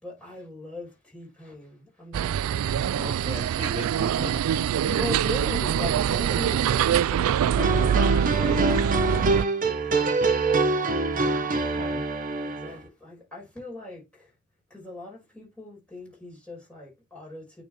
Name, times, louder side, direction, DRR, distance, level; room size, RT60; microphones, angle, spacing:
voice 1, 0.0-3.1 4.3-4.4 4.8-9.5 11.1-11.8 12.4-14.3 14.7-17.6, left 2 dB, 5° left, 5.0 m, -40 dB
sound 1, 2.1-9.5, right 9 dB, 80° right, 0.3 m, -24 dB
voice 2, 3.0-4.6 11.0-12.0, right 1 dB, 25° right, 2.0 m, -37 dB
sound 2, 7.6-12.7, right 3 dB, 40° right, 1.0 m, -25 dB
9.1 x 4.2 x 3.2 m
head